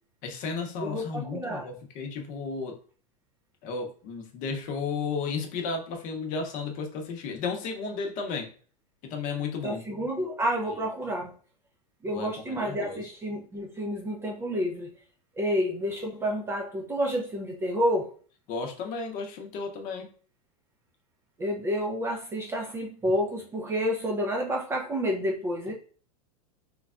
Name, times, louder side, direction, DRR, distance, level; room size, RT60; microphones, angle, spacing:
voice 1, 0.2-2.8 3.6-8.5 9.0-9.8 12.1-13.0 18.5-20.1, left 4 dB, 45° left, 3 dB, 0.7 m, -33 dB
voice 2, 0.8-1.7 9.6-11.3 12.0-14.9 15.4-18.1 21.4-25.7, equal, 15° right, -1 dB, 0.3 m, -29 dB
3.2 x 2.2 x 2.4 m, 0.42 s
supercardioid pair, 135°, 20 cm